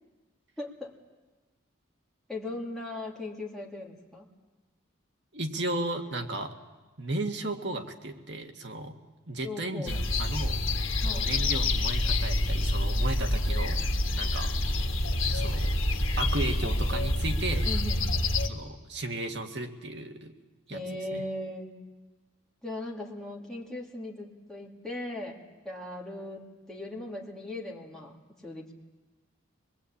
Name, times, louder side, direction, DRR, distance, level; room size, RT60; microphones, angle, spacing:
voice 1, 0.6-0.9 2.3-4.3 9.4-10.0 11.0-11.3 17.6-18.0 20.7-21.8 22.6-28.7, left 1 dB, 5° left, -3 dB, 2.6 m, -38 dB
voice 2, 5.3-6.5 7.0-8.9 9.3-10.7 11.0-13.8 14.1-14.5 15.3-15.7 16.2-17.7 18.5-20.3 20.7-20.8 21.1-21.2, right 2 dB, 55° right, 4 dB, 1.9 m, -34 dB
sound 1, 9.9-18.5, left 1 dB, 80° left, 1.8 m, -27 dB
25.0 x 21.0 x 8.6 m, 1.2 s
head